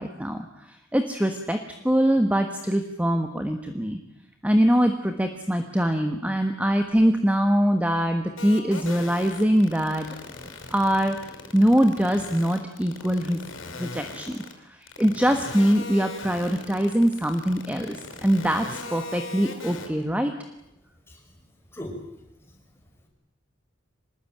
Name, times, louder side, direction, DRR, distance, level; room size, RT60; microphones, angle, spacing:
voice 1, 0.0-1.6 1.8-4.0 4.4-10.1 10.7-13.4 13.8-14.4 14.7-20.3, equal, 5° right, 6 dB, 1.4 m, -23 dB
sound 1, 8.4-14.5 14.9-19.9, left 3 dB, 80° left, 5.6 m, -38 dB
voice 2, 21.1-22.8, left 1 dB, 10° left, 1 dB, 5.9 m, -42 dB
25.0 x 20.0 x 9.2 m, 0.85 s
head